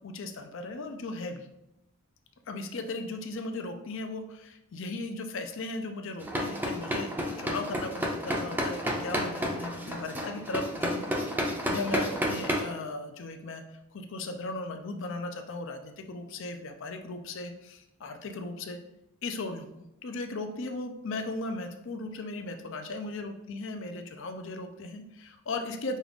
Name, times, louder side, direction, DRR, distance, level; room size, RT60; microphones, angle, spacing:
voice 1, 0.0-1.5 2.5-13.6 13.9-18.8 19.2-26.0, left 2 dB, 65° left, 6 dB, 0.5 m, -37 dB
sound 1, 6.2-12.6, equal, 10° right, 0.5 m, -31 dB
5.3 x 2.4 x 3.5 m, 0.86 s
head